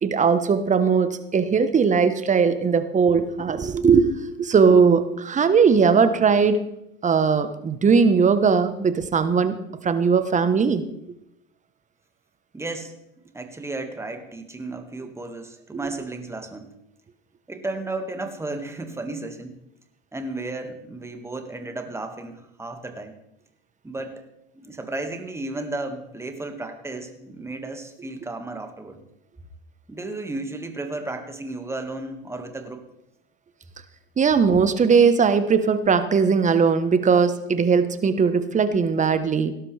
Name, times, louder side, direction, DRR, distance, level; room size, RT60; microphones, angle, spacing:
voice 1, 0.0-4.1 4.4-6.6 7.0-10.8 34.2-39.5, right 5 dB, 25° right, 11 dB, 1.1 m, -19 dB
voice 2, 12.5-13.0 13.3-16.7 17.5-19.6 20.1-23.2 23.8-24.3 24.5-29.0 29.9-32.8, right 2 dB, 10° right, 6 dB, 1.8 m, -33 dB
17.5 x 12.0 x 3.4 m, 0.82 s
hypercardioid pair, 85°, 30 cm